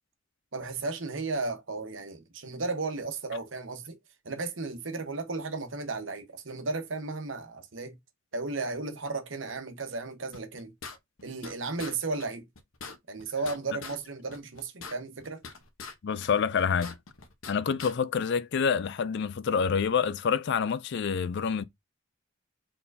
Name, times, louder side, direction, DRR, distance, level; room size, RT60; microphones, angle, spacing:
voice 1, 0.5-4.0 4.2-8.0 8.3-10.7 11.2-12.4 13.1-15.4, right 3 dB, 65° right, 1.1 m, -34 dB
sound 1, 10.3-11.5 11.8-11.9 12.2-12.3 12.6-14.0 14.3-15.9 16.2-17.5 17.8-17.9, left 5 dB, 85° left, 1.0 m, -43 dB
voice 2, 16.0-17.0 17.5-21.6, left 6 dB, 55° left, 0.4 m, -27 dB
4.3 x 3.8 x 2.7 m
head